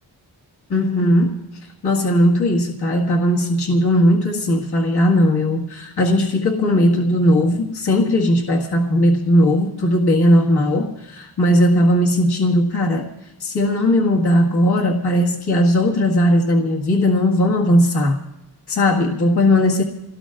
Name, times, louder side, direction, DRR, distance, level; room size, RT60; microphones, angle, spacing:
voice 1, 0.7-1.5 1.8-13.1 13.4-18.2 18.7-19.8, left 1 dB, 60° left, -3 dB, 1.9 m, -17 dB
28.5 x 17.5 x 2.5 m, 1.0 s
wide cardioid pair, 100°, 43 cm